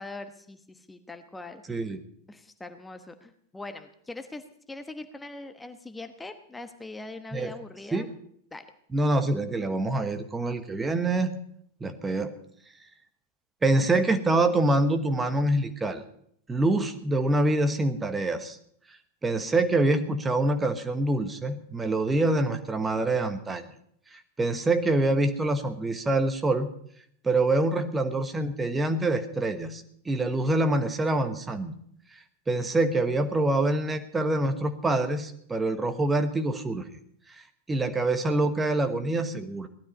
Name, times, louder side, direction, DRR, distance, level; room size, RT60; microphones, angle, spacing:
voice 1, 0.0-1.8 2.3-8.1 8.5-8.6, left 2 dB, 10° left, 8 dB, 1.2 m, -42 dB
voice 2, 8.9-11.4 11.8-12.3 13.6-16.0 16.5-18.6 19.2-23.6 24.1-26.7 27.2-31.7 32.5-36.8 37.3-37.4 37.7-39.7, right 2 dB, 15° right, 8 dB, 1.2 m, -25 dB
18.0 x 13.0 x 5.5 m, 0.67 s
figure-of-eight pair, 90°, 0 cm